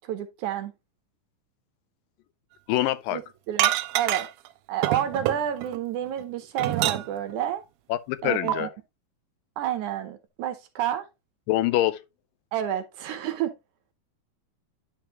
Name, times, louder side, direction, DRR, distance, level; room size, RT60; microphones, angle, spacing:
voice 1, 0.1-0.7 3.1-3.2 3.5-4.3 4.7-7.6 8.2-8.7 9.6-11.1 12.5-13.5, right 10 dB, 75° right, 1.9 m, -29 dB
voice 2, 2.7-3.2 7.9-8.7 11.5-12.0, left 15 dB, 80° left, 2.2 m, -25 dB
sound 1, 3.6-4.5 4.8-5.8 6.2-7.3 8.5-8.6, right 14 dB, 90° right, 2.5 m, -26 dB
10.0 x 5.1 x 2.9 m
omnidirectional pair, 4.2 m